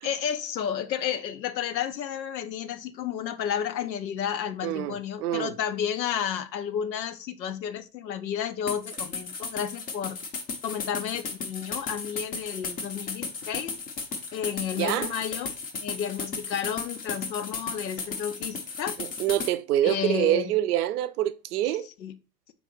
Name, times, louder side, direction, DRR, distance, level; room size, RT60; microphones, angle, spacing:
voice 1, 0.0-10.2 10.6-13.7 14.3-15.5 15.8-19.0 19.8-20.5 21.8-22.1, left 8 dB, 85° left, 0.6 m, -32 dB
voice 2, 4.6-5.5 14.8-15.1 19.2-21.9, right 13 dB, 65° right, 0.6 m, -26 dB
sound 1, 8.7-19.5, left 4 dB, 20° left, 0.5 m, -35 dB
3.9 x 3.8 x 3.0 m
hypercardioid pair, 95°, 50 cm